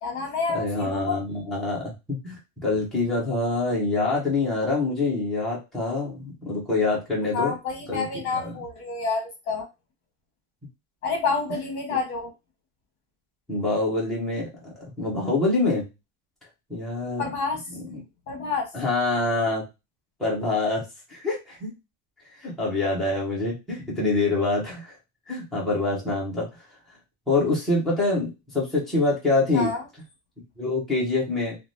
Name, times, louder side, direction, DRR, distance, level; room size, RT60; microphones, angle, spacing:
voice 1, 0.0-1.2 7.3-9.7 11.0-12.3 17.2-17.6 18.3-18.7 29.5-29.8, left 4 dB, 35° left, 1 dB, 0.9 m, -28 dB
voice 2, 0.5-2.4 2.6-7.5 7.9-8.5 13.5-15.8 16.7-17.2 17.9-18.0 18.7-19.6 20.2-20.8 21.1-21.7 22.4-24.9 25.3-26.5 27.3-29.7 30.6-31.6, left 3 dB, ahead, -7 dB, 0.4 m, -25 dB
3.1 x 2.1 x 2.5 m, 0.25 s
cardioid pair, 175°, 47 cm